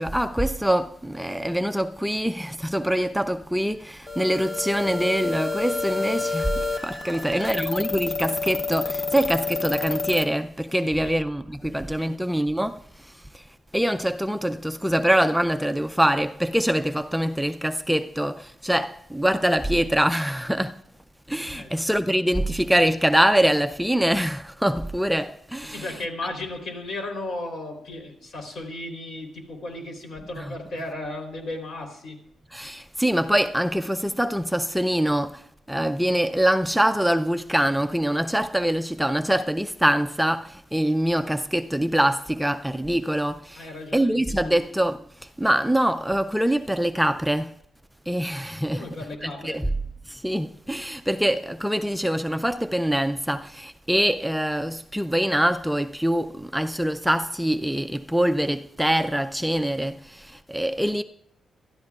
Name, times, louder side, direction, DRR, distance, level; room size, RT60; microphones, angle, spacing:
voice 1, 0.0-13.5 13.7-20.8 21.3-26.0 30.4-30.5 32.5-47.5 48.1-48.9 49.2-49.7 50.1-61.0, right 1 dB, ahead, 0.4 m, -24 dB
sound 1, 4.1-10.2, left 4 dB, 25° left, 1.0 m, -29 dB
voice 2, 7.0-7.6 10.8-11.2 11.7-12.1 21.5-21.7 25.7-32.2 43.5-44.6 48.7-49.6, left 2 dB, 70° left, 3.5 m, -35 dB
25.0 x 12.5 x 2.4 m
wide cardioid pair, 140°, 0 cm